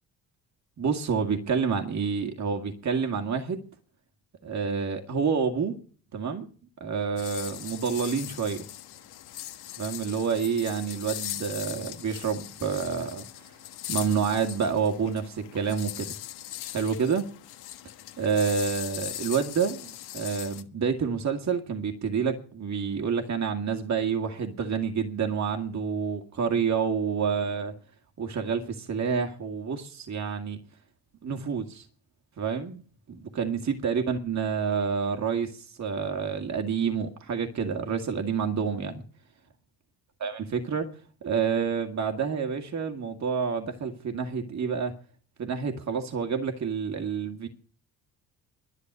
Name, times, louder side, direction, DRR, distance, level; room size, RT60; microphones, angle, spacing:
voice 1, 0.8-3.6 4.4-5.8 6.1-6.5 6.8-8.6 9.8-13.5 13.9-16.1 16.7-17.3 18.2-27.7 28.2-30.6 31.2-31.9 32.4-32.8 33.1-39.0 40.2-40.9 41.2-44.9 45.4-47.5, right 6 dB, 45° right, 4 dB, 2.1 m, -28 dB
sound 1, 7.2-20.6, left 14 dB, 75° left, 1.5 m, -40 dB
11.0 x 8.1 x 9.4 m, 0.42 s
supercardioid pair, 65°, 39 cm